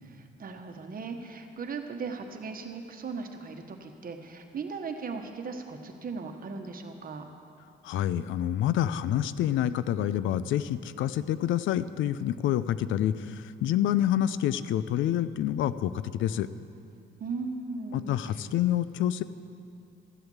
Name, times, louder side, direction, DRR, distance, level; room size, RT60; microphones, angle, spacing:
voice 1, 0.0-7.3 17.2-18.4, right 4 dB, 45° right, 5 dB, 1.3 m, -38 dB
voice 2, 7.8-16.5 17.9-19.2, left 11 dB, 80° left, 15 dB, 0.5 m, -27 dB
13.5 x 7.9 x 7.1 m, 2.5 s
cardioid pair, 90°, 20 cm